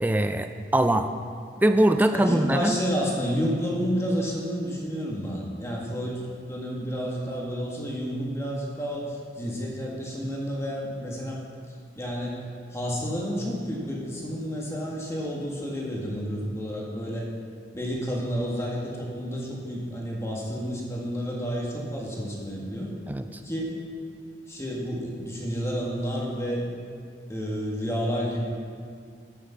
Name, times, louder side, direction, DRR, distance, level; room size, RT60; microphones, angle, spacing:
voice 1, 0.0-1.1 1.6-2.8 23.1-23.2, right 1 dB, 10° right, 8 dB, 0.3 m, -22 dB
voice 2, 2.1-6.2 6.5-11.4 12.0-12.4 12.7-17.3 17.7-22.9 23.4-23.7 24.5-26.6 27.3-28.6, equal, 15° left, -3 dB, 1.8 m, -30 dB
9.8 x 8.5 x 5.7 m, 2.2 s
head